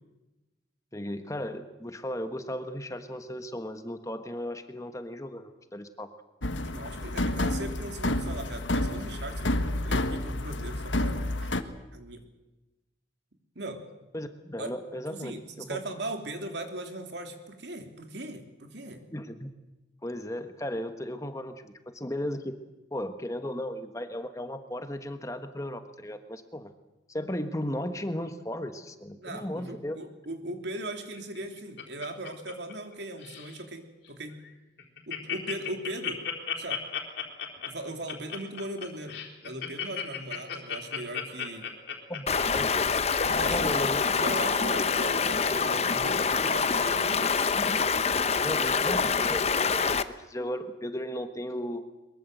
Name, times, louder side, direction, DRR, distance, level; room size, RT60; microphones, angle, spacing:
voice 1, 0.9-6.1 14.1-15.8 19.1-19.5 20.0-22.6 22.9-26.7 27.1-30.0 42.1-42.9 43.5-44.0 48.4-51.8, left 1 dB, 15° left, 8 dB, 1.3 m, -35 dB
sound 1, 6.4-11.6, left 1 dB, 85° left, 1.5 m, -29 dB
voice 2, 6.6-9.6 9.8-11.5 11.9-12.2 13.5-13.8 14.6-14.7 15.1-19.0 29.1-34.4 35.1-36.2 36.6-36.8 37.7-41.7 43.2-47.5, right 1 dB, 65° right, 5 dB, 3.2 m, -39 dB
Laughter, 31.2-32.9 33.2-33.6 34.0-34.1 34.4-34.5 34.8-43.2 43.7-43.8, left 8 dB, 60° left, 3.9 m, -35 dB
Stream, 42.3-50.0, left 5 dB, 35° left, 0.8 m, -26 dB
22.5 x 22.5 x 7.9 m, 1.0 s
head